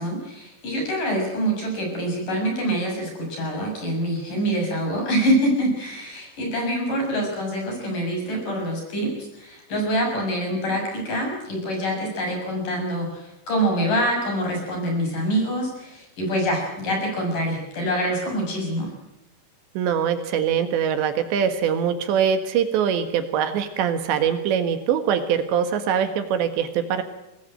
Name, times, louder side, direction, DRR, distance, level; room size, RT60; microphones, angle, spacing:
voice 1, 0.0-18.9, equal, 45° left, 2 dB, 8.2 m, -25 dB
voice 2, 19.8-27.0, right 8 dB, 75° right, 8 dB, 3.8 m, -23 dB
23.5 x 19.0 x 8.9 m, 0.87 s
omnidirectional pair, 5.1 m